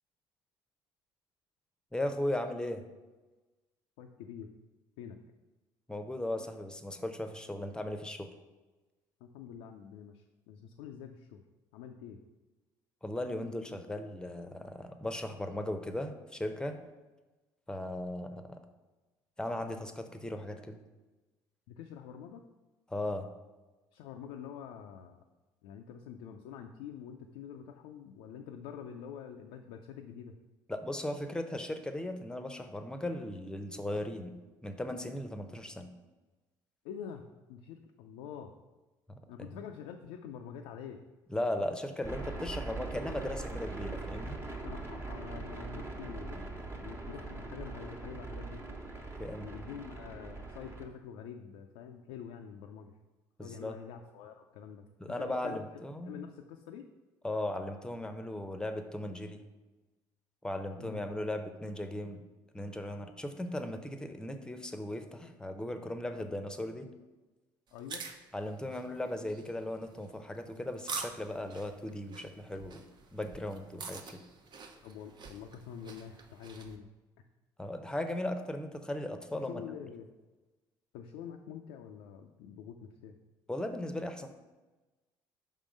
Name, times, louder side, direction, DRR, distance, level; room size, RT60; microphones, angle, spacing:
voice 1, 1.9-2.8 5.9-8.3 13.0-16.8 17.7-18.6 19.4-20.8 22.9-23.3 30.7-34.3 34.6-35.9 39.1-39.2 41.3-44.4 49.2-49.5 53.4-53.7 55.0-56.2 57.2-59.4 60.4-62.2 62.5-66.9 68.3-72.8 73.1-74.2 77.6-79.6 83.5-84.3, left 1 dB, 10° left, 7 dB, 0.7 m, -37 dB
voice 2, 4.0-4.5 5.0-5.2 9.2-11.4 11.7-12.2 21.7-22.4 23.9-25.2 25.6-30.3 36.8-38.5 39.3-41.0 44.6-48.6 49.4-52.9 53.4-55.6 56.0-56.9 60.8-61.0 67.7-68.0 74.8-76.9 79.3-80.1 80.9-83.1, left 8 dB, 85° left, 3 dB, 0.4 m, -46 dB
sound 1, 42.0-50.8, right 2 dB, 25° right, 1.1 m, -41 dB
sound 2, 67.7-76.8, right 5 dB, 50° right, 0.7 m, -46 dB
5.4 x 3.6 x 5.1 m, 1.2 s
supercardioid pair, 65°, 10 cm